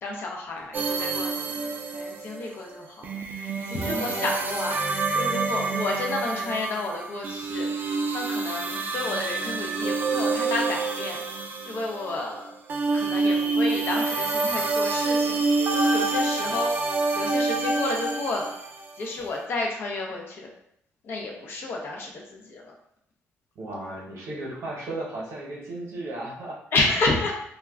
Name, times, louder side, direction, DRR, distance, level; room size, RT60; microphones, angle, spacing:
voice 1, 0.0-7.7 8.1-11.2 11.7-12.5 12.9-16.7 17.2-18.5 19.0-20.5 21.0-22.7 26.7-27.4, left 3 dB, 50° left, 0 dB, 0.5 m, -31 dB
sound 1, 0.7-12.4 12.7-18.9, right 3 dB, 40° right, 0.3 m, -27 dB
voice 2, 3.8-4.2 23.6-26.6, right 2 dB, 60° right, -2 dB, 0.8 m, -35 dB
2.2 x 2.1 x 3.5 m, 0.73 s
cardioid pair, 170°, 5 cm